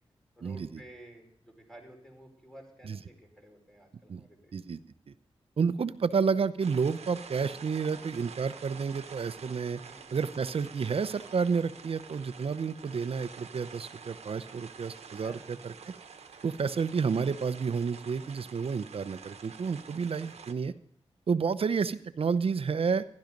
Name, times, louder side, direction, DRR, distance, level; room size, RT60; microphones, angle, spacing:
voice 1, 0.4-4.5 9.8-10.1 15.2-15.7, right 1 dB, 5° left, 2 dB, 5.1 m, -52 dB
voice 2, 5.6-9.8 10.1-15.7 16.4-20.7 21.3-23.0, right 5 dB, 60° right, 14 dB, 0.8 m, -30 dB
sound 1, 6.6-20.5, right 6 dB, 80° right, 1.2 m, -48 dB
15.0 x 11.5 x 5.3 m, 0.65 s
cardioid pair, 65°, 11 cm